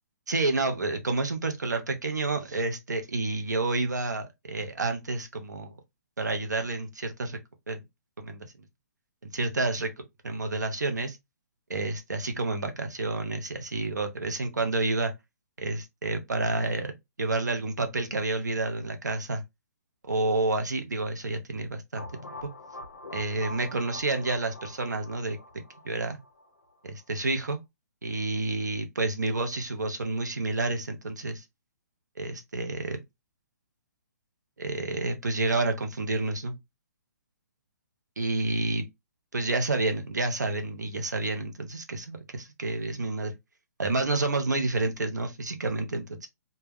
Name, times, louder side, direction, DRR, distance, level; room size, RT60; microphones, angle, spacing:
voice 1, 0.3-5.7 6.2-7.4 7.7-7.8 8.2-8.5 9.2-9.9 10.2-11.2 11.7-15.1 15.6-19.4 20.1-22.5 23.1-25.4 25.8-26.2 26.8-27.6 28.0-31.4 32.2-33.0 34.6-36.6 38.2-38.8 39.3-43.3 43.8-46.3, right 2 dB, 90° right, 0.7 m, -29 dB
sound 1, 21.9-26.7, left 2 dB, 90° left, 0.6 m, -44 dB
2.2 x 2.1 x 3.4 m
hypercardioid pair, 140°, 9 cm